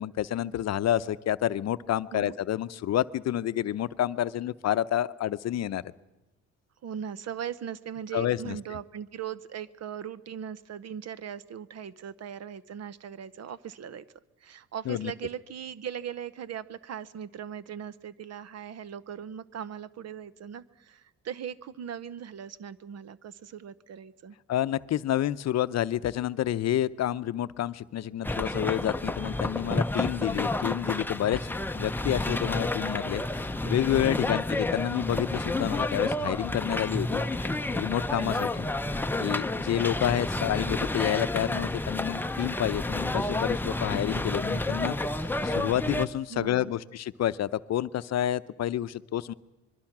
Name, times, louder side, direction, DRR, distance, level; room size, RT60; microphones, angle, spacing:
voice 1, 0.0-5.9 8.1-8.6 14.9-15.1 24.5-37.2 37.7-38.7 39.2-49.3, left 12 dB, 60° left, 14 dB, 0.7 m, -29 dB
voice 2, 6.8-14.1 14.4-24.4 34.2-34.4 37.2-37.6 38.2-38.5 46.3-46.7, right 8 dB, 55° right, 17 dB, 0.9 m, -39 dB
sound 1, 28.2-46.1, left 2 dB, 5° left, 0.7 m, -30 dB
25.5 x 21.5 x 6.0 m, 1.0 s
cardioid pair, 90°, 30 cm